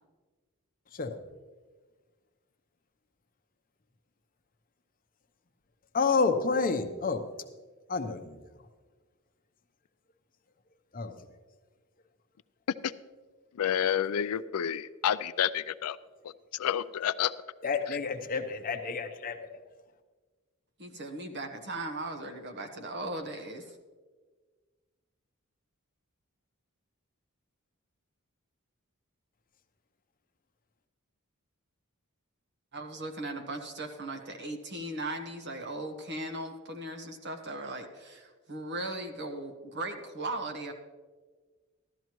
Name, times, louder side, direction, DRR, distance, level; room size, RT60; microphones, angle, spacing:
voice 1, 5.9-7.2 7.9-8.4 10.9-11.1 17.6-19.6, left 4 dB, 40° left, 6 dB, 0.8 m, -29 dB
voice 2, 13.5-16.0 16.5-17.3 17.9-18.0, left 9 dB, 85° left, 15 dB, 0.4 m, -29 dB
voice 3, 20.8-23.8 32.7-40.7, right 2 dB, 50° right, 5 dB, 1.2 m, -38 dB
14.5 x 12.5 x 3.0 m, 1.4 s
head